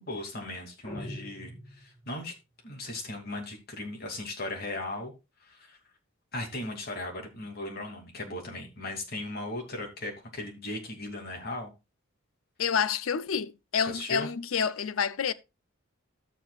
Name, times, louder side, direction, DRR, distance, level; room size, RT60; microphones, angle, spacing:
voice 1, 0.0-2.3 2.6-5.1 5.4-5.8 6.3-11.7 13.9-14.3, left 2 dB, 50° left, 2.5 m, -37 dB
sound 1, 0.8-2.3, equal, 25° left, 4.5 m, -43 dB
voice 2, 12.6-15.3, left 7 dB, 85° left, 0.6 m, -28 dB
13.0 x 7.3 x 2.3 m
head